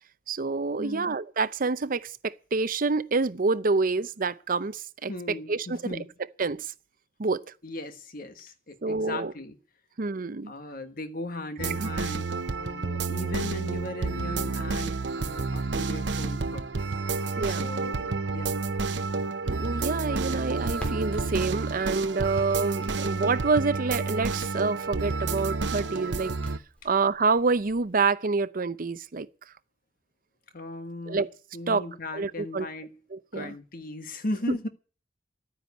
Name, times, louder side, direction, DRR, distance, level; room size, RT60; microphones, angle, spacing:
voice 1, 0.3-6.0 6.4-6.7 7.2-7.4 8.8-9.3 10.0-10.5 11.8-11.9 17.4-17.7 19.5-26.3 26.8-29.3 31.1-31.3 31.7-31.8 32.1-32.7 33.1-33.5, right 4 dB, 50° right, 0.7 m, -27 dB
voice 2, 0.8-1.1 5.1-6.1 7.6-9.6 10.5-16.9 17.4-18.5 30.5-31.2 31.5-32.9 33.3-34.7, left 2 dB, 55° left, 1.5 m, -37 dB
sound 1, 11.6-26.6, right 4 dB, 80° right, 0.8 m, -30 dB
Crackle, 20.6-27.9, equal, 5° left, 3.5 m, -48 dB
12.0 x 9.7 x 9.5 m
head